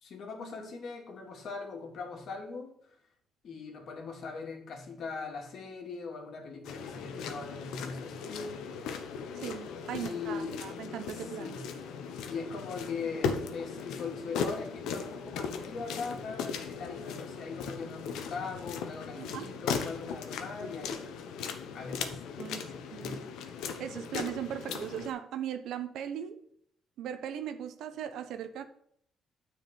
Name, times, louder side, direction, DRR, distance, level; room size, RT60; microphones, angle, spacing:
voice 1, 0.0-2.8 3.4-9.1 9.9-10.7 11.2-11.7 12.3-21.1 21.7-23.2, left 4 dB, 65° left, 1 dB, 2.6 m, -41 dB
sound 1, 6.6-25.1, left 6 dB, 90° left, 1.1 m, -38 dB
voice 2, 9.3-11.6 19.2-19.6 22.4-23.2 23.8-26.4 27.0-28.6, right 9 dB, 80° right, 10 dB, 0.9 m, -38 dB
9.2 x 4.8 x 6.9 m, 0.67 s
cardioid pair, 90°, 0 cm